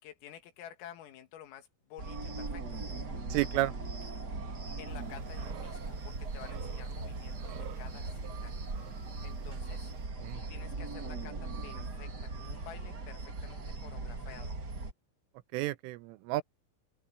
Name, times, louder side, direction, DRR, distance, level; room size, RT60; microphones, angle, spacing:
voice 1, 0.0-2.8 4.8-8.5 9.2-9.9 10.3-14.6, left 10 dB, 85° left, 4.8 m, -51 dB
sound 1, 2.0-14.9, right 3 dB, 40° right, 1.5 m, -39 dB
voice 2, 3.3-3.7 10.2-10.4 15.5-16.4, right 17 dB, 90° right, 3.2 m, -31 dB
sound 2, 4.9-10.1, right 12 dB, 70° right, 4.0 m, -52 dB
open air
omnidirectional pair, 5.8 m